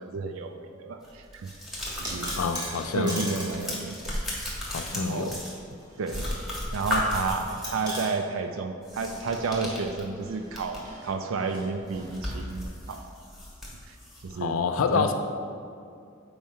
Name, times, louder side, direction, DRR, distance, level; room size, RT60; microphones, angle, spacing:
voice 1, 0.0-1.5 2.0-2.4 2.9-4.1 4.9-5.4 6.0-6.3 6.7-13.0 13.9-14.0 14.2-14.6 14.9-15.1, right 4 dB, 80° right, 6 dB, 0.4 m, -31 dB
sound 1, 1.0-3.0 3.2-5.8 6.1-7.8 8.8-11.0 11.3-11.4 11.8-14.3, left 1 dB, ahead, 1.3 m, -35 dB
sound 2, 1.8-3.6 3.9-4.0 5.5-6.2 6.5-6.6 7.6-8.1 10.0-12.9, equal, 20° right, 1.6 m, -39 dB
voice 2, 2.4-3.2 4.7-5.4 14.4-15.1, left 5 dB, 80° left, 7 dB, 0.4 m, -27 dB
7.1 x 4.8 x 4.3 m, 2.5 s
head